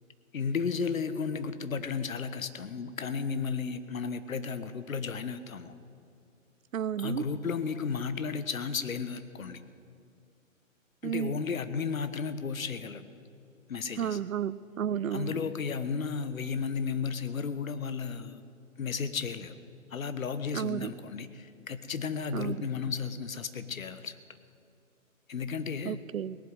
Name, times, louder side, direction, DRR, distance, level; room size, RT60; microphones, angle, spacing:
voice 1, 0.3-5.7 7.0-9.6 11.0-13.0 13.7-14.2 15.1-18.4 18.8-19.5 19.9-24.2 25.3-26.0, left 5 dB, 75° left, 12 dB, 1.2 m, -33 dB
voice 2, 6.7-7.3 11.0-11.4 14.0-15.4 20.5-20.9 22.3-22.6 25.8-26.4, right 9 dB, 80° right, 19 dB, 0.6 m, -32 dB
18.0 x 7.8 x 9.7 m, 2.4 s
figure-of-eight pair, 125°, 41 cm